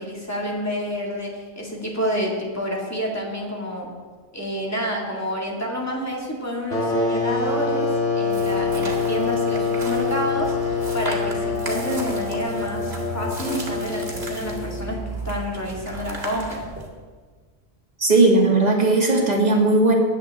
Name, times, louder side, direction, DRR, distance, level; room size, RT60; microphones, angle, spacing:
voice 1, 0.0-3.9 4.3-7.9 8.2-16.6, equal, 15° left, -2 dB, 2.3 m, -29 dB
sound 1, 6.7-15.1, left 4 dB, 85° left, 2.4 m, -25 dB
sound 2, 8.3-16.9, right 2 dB, 65° right, 2.3 m, -35 dB
voice 2, 18.0-19.9, right 2 dB, 40° right, -2 dB, 2.2 m, -17 dB
19.5 x 7.9 x 3.6 m, 1.5 s
omnidirectional pair, 1.1 m